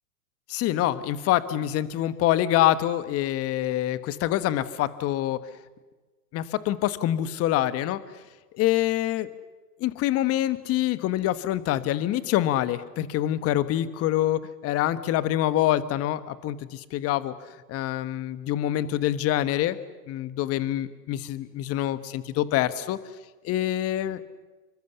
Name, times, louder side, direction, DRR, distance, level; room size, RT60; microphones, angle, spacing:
voice 1, 0.5-5.4 6.3-8.0 8.5-9.3 9.8-17.3 17.7-19.8 20.1-23.0 23.4-24.2, left 13 dB, 30° left, 13 dB, 1.4 m, -25 dB
27.5 x 24.0 x 7.0 m, 1.2 s
hypercardioid pair, 115°, 47 cm